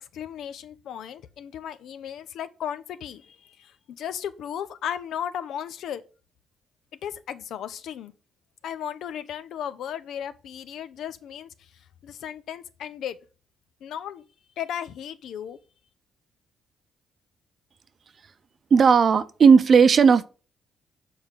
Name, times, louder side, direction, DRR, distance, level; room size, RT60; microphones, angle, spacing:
voice 1, 0.1-3.7 4.0-6.0 7.0-8.1 8.6-11.5 12.0-13.2 13.8-14.2 14.6-15.6, left 9 dB, 75° left, 0.7 m, -35 dB
voice 2, 18.7-20.3, right 6 dB, 45° right, 0.7 m, -15 dB
7.1 x 4.8 x 5.7 m
cardioid pair, 90°, 0 cm